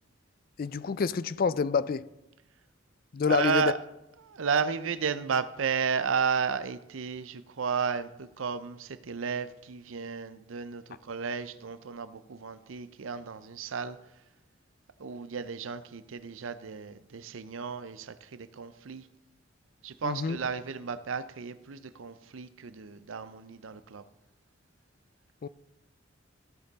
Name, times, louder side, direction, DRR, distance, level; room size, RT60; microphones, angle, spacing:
voice 1, 0.6-2.1 3.1-3.7 20.0-20.4 25.4-25.5, left 5 dB, 45° left, 0.3 m, -27 dB
voice 2, 3.3-3.8 4.2-14.0 15.0-19.0 19.8-24.0, right 6 dB, 80° right, 0.6 m, -33 dB
15.0 x 6.6 x 4.1 m
head